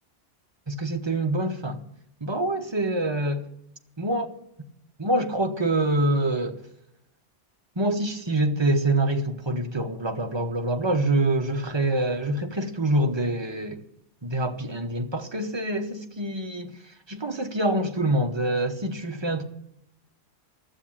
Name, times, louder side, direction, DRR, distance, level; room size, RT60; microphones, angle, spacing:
voice 1, 0.7-1.8 2.2-3.4 4.0-4.3 5.0-6.6 7.8-13.8 14.2-16.7 17.1-19.4, right 1 dB, 25° right, 1.0 m, -25 dB
13.0 x 7.3 x 8.8 m
omnidirectional pair, 1.3 m